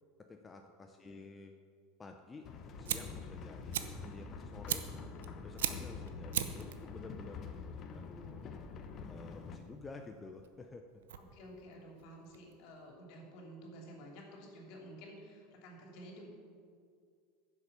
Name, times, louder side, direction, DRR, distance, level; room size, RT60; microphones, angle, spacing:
voice 1, 0.2-1.5 2.0-2.5 2.8-4.9 5.4-7.4 7.9-8.5 9.1-11.0, left 3 dB, 20° left, 4 dB, 0.7 m, -51 dB
sound 1, 2.4-9.6, left 4 dB, 40° left, 1.0 m, -46 dB
Fire, 2.4-12.9, right 10 dB, 90° right, 0.7 m, -42 dB
voice 2, 11.2-16.3, equal, 60° left, 0 dB, 3.0 m, -52 dB
10.0 x 7.2 x 6.8 m, 2.1 s
supercardioid pair, 110°, 0 cm